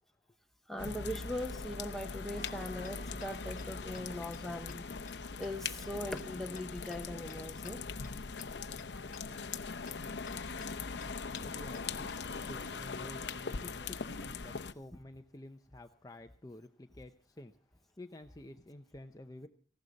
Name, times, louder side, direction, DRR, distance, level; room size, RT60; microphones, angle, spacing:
voice 1, 0.7-4.9 5.4-8.1 9.3-9.4, left 1 dB, ahead, 1.0 m, -40 dB
sound 1, 0.8-14.7, left 5 dB, 70° left, 0.8 m, -41 dB
Tick-tock, 2.4-12.6, left 4 dB, 45° left, 1.2 m, -54 dB
sound 2, 8.7-14.6, right 2 dB, 60° right, 1.8 m, -61 dB
voice 2, 11.4-14.0 14.4-19.5, left 1 dB, 20° left, 0.7 m, -51 dB
19.0 x 15.5 x 4.0 m
head